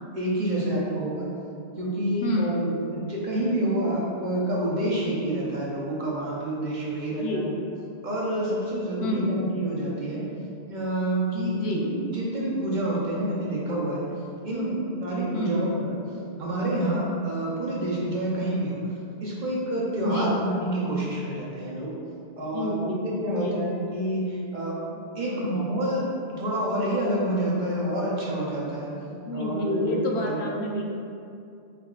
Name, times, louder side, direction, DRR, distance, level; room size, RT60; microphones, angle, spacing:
voice 1, 0.1-1.3 1.8-7.5 8.0-10.3 10.7-14.0 14.4-14.7 15.0-16.0 16.4-18.8 19.2-21.9 22.4-28.9 29.3-30.7, right 1 dB, 50° right, -6 dB, 0.8 m, -28 dB
voice 2, 2.2-2.7 7.1-7.5 9.0-9.4 11.5-11.9 14.5-14.8 15.3-15.6 20.0-20.4 22.4-23.6 25.2-25.6 29.2-30.8, left 1 dB, 80° left, 0 dB, 0.8 m, -29 dB
4.6 x 3.6 x 2.3 m, 2.5 s
omnidirectional pair, 1.1 m